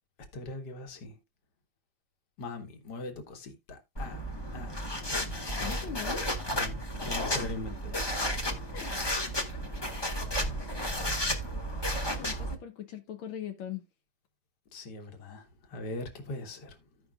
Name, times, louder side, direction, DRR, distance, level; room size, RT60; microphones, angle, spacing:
voice 1, 0.3-1.2 2.4-4.2 4.5-4.7 5.1-5.8 6.4-8.5 8.8-9.1 14.7-16.8, left 2 dB, 60° left, 1.9 m, -41 dB
sound 1, 4.0-12.6, equal, 20° left, 0.8 m, -33 dB
voice 2, 5.6-6.4 8.7-9.0 12.1-13.8, left 9 dB, 85° left, 1.6 m, -40 dB
15.5 x 5.3 x 2.3 m
omnidirectional pair, 2.1 m